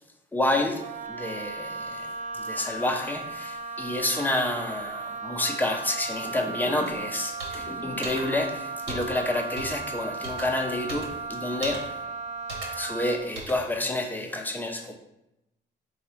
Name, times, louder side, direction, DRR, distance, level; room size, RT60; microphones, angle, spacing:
voice 1, 0.3-2.1 2.4-11.9 12.7-14.9, left 1 dB, 10° left, 3 dB, 0.6 m, -29 dB
Wind instrument woodwind instrument, 0.7-13.2, right 4 dB, 40° right, 0.4 m, -36 dB
sound 1, 6.2-7.2 7.4-8.3 8.7-8.8 9.1-9.3 9.8-11.2 11.5-12.1, left 1 dB, 40° left, 0.8 m, -44 dB
sound 2, 6.9-7.0 7.4-7.6 8.0-8.2 8.9-9.1 9.6-9.8 10.2-10.4 10.9-11.1 11.6-11.8 12.5-12.7 13.4-13.6, right 2 dB, 85° right, 1.2 m, -36 dB
3.8 x 2.3 x 4.3 m, 0.88 s
cardioid pair, 90°, 20 cm